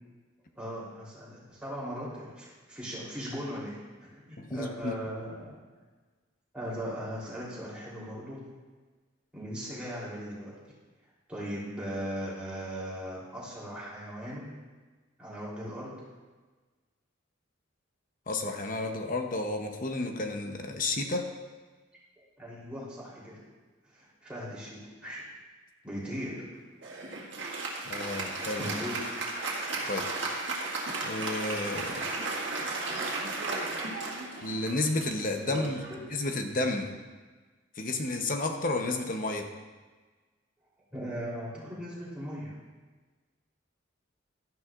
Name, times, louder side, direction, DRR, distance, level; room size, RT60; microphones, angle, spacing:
voice 1, 0.5-3.8 4.1-5.6 6.5-8.4 9.3-10.6 11.3-14.5 15.2-15.9 22.4-23.4 23.8-25.2 25.8-26.4 28.6-29.0 35.5-36.0 40.9-42.5, equal, 5° right, -8 dB, 3.5 m, -38 dB
voice 2, 4.4-4.9 18.3-21.3 27.9-28.7 29.9-30.1 31.0-32.1 34.4-35.8 36.1-36.9 37.8-39.5, left 2 dB, 45° left, 4 dB, 0.9 m, -31 dB
Applause, 26.8-36.6, right 3 dB, 65° right, 2.0 m, -35 dB
12.5 x 10.5 x 2.5 m, 1.3 s
head